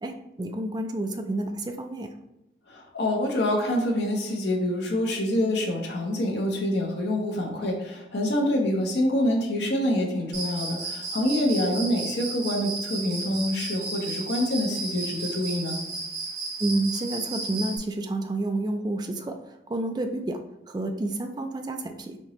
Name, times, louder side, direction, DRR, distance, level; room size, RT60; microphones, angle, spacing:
voice 1, 0.0-2.1 16.6-22.2, right 2 dB, 25° right, 5 dB, 0.3 m, -30 dB
voice 2, 2.7-15.8, left 1 dB, 70° left, 0 dB, 0.8 m, -26 dB
Cricket, 10.3-17.8, right 3 dB, 75° right, 1.1 m, -34 dB
4.3 x 2.9 x 3.0 m, 0.89 s
head